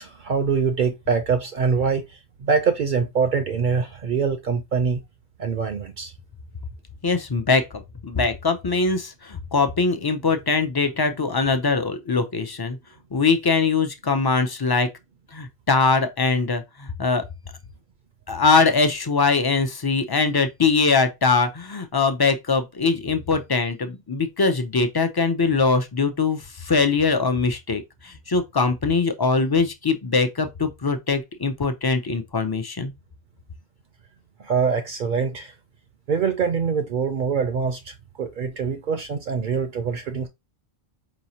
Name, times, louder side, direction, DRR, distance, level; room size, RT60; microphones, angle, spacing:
voice 1, 0.0-2.0 2.4-5.0 5.4-6.1 34.4-35.5 36.1-40.3, right 5 dB, 60° right, 0.6 m, -24 dB
voice 2, 7.0-12.8 13.1-14.9 15.3-17.2 18.3-32.9, left 4 dB, 40° left, 0.3 m, -22 dB
4.8 x 3.0 x 2.7 m
omnidirectional pair, 1.1 m